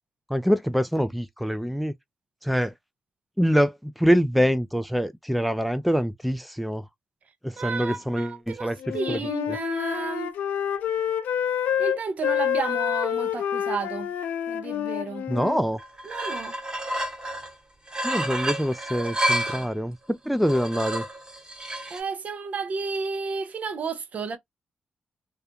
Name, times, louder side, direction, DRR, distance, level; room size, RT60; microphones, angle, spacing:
voice 1, 0.3-1.9 2.4-2.7 3.4-6.8 7.4-9.2 9.5-9.6 15.3-15.8 18.0-21.0, equal, ahead, 0.4 m, -25 dB
voice 2, 7.6-10.3 11.8-14.1 14.5-15.3 16.0-16.5 21.9-24.4, right 5 dB, 60° right, 0.6 m, -32 dB
Wind instrument woodwind instrument, 8.8-15.6, left 9 dB, 85° left, 0.4 m, -27 dB
sound 1, 15.4-15.5 15.8-17.5 17.9-19.7 20.3-22.0, right 1 dB, 30° right, 1.3 m, -30 dB
2.4 x 2.1 x 2.8 m
supercardioid pair, 55°, 3 cm